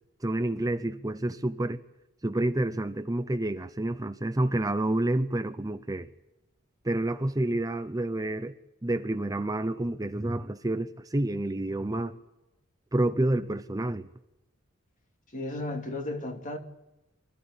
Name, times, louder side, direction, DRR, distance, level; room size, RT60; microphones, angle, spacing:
voice 1, 0.2-1.8 2.2-6.1 6.8-8.5 8.8-12.2 12.9-14.1, right 1 dB, 20° right, 0.7 m, -29 dB
voice 2, 15.3-16.6, left 2 dB, 40° left, 2.8 m, -34 dB
25.0 x 14.5 x 9.9 m
head